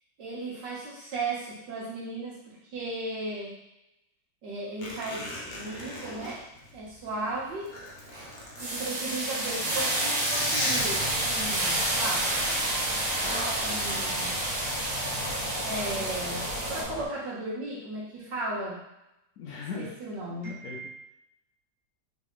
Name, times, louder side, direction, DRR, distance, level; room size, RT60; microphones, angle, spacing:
voice 1, 0.2-3.5 4.4-6.4 6.7-7.8 8.6-12.3 13.6-14.5 15.6-16.4 16.7-18.8 19.8-20.9, right 2 dB, 80° right, -5 dB, 1.8 m, -36 dB
Zipper (clothing), 4.8-7.2 7.5-11.5 12.1-12.4, left 1 dB, 50° left, 0.5 m, -36 dB
sound 1, 7.1-7.4 7.8-16.8, right 1 dB, 35° right, 0.7 m, -29 dB
sound 2, 10.7-17.1, left 1 dB, 55° right, 1.6 m, -38 dB
voice 2, 19.4-19.9 20.4-20.9, left 5 dB, 70° left, 0 dB, 1.0 m, -38 dB
3.8 x 3.3 x 3.1 m, 0.87 s
omnidirectional pair, 1.9 m